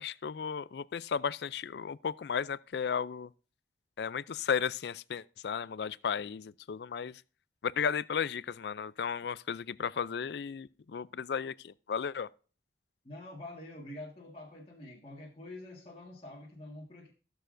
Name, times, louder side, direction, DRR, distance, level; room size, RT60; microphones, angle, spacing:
voice 1, 0.0-3.3 4.0-7.2 7.6-12.3, left 6 dB, 65° left, 0.4 m, -34 dB
voice 2, 13.0-17.1, left 1 dB, 30° left, 1.7 m, -46 dB
16.5 x 6.9 x 2.6 m
head